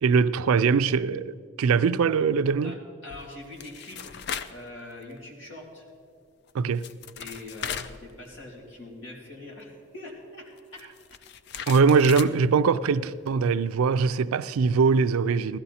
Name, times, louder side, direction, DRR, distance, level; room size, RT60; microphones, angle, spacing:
voice 1, 0.0-2.8 6.5-6.9 11.7-15.6, right 5 dB, 90° right, 0.4 m, -22 dB
voice 2, 3.0-4.2 4.5-5.8 7.1-10.8 11.5-11.8, left 2 dB, 65° left, 3.0 m, -43 dB
sound 1, 3.1-4.6 5.0-5.2 6.5-6.6 6.8-8.6 8.9-9.0 10.6-12.4, left 7 dB, 50° left, 0.4 m, -37 dB
16.5 x 13.0 x 4.2 m
head